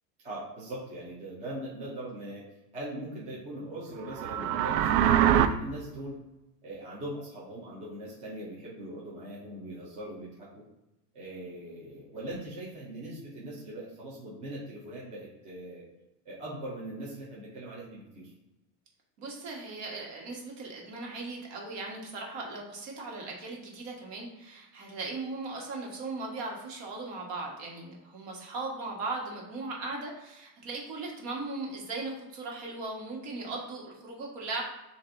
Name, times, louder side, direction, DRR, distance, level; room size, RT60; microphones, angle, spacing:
voice 1, 0.2-2.4 2.7-6.2 6.6-10.5 11.1-15.8 16.2-18.3, right 1 dB, 15° right, -6 dB, 0.6 m, -40 dB
sound 1, 4.1-5.5, right 10 dB, 75° right, 0.5 m, -23 dB
voice 2, 19.2-34.6, right 3 dB, 50° right, -1 dB, 1.5 m, -38 dB
7.4 x 2.6 x 2.6 m, 0.96 s
supercardioid pair, 165°, 49 cm